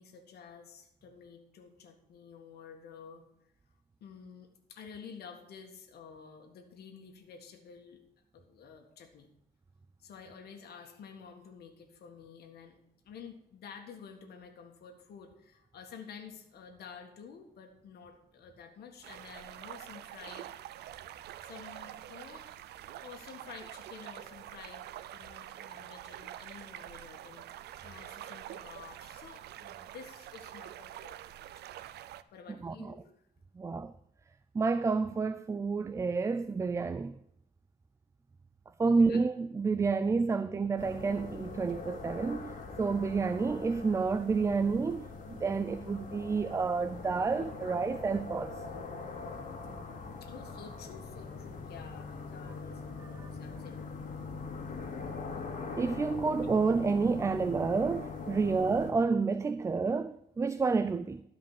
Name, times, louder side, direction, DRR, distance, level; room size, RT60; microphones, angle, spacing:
voice 1, 0.0-3.2 4.0-8.0 8.3-9.3 10.0-12.8 13.0-20.5 21.4-22.5 23.0-31.5 32.3-33.1 38.8-39.2 50.2-54.1 58.4-58.5, left 6 dB, 75° left, 1.7 m, -51 dB
sound 1, 19.0-32.2, right 12 dB, 85° right, 0.5 m, -46 dB
voice 2, 33.6-33.9 34.5-37.2 38.8-48.6 53.0-53.3 55.8-61.2, right 4 dB, 20° right, 0.3 m, -29 dB
sound 2, 40.8-58.9, left 4 dB, 50° left, 2.1 m, -42 dB
12.5 x 5.1 x 7.3 m
cardioid pair, 115°, 17 cm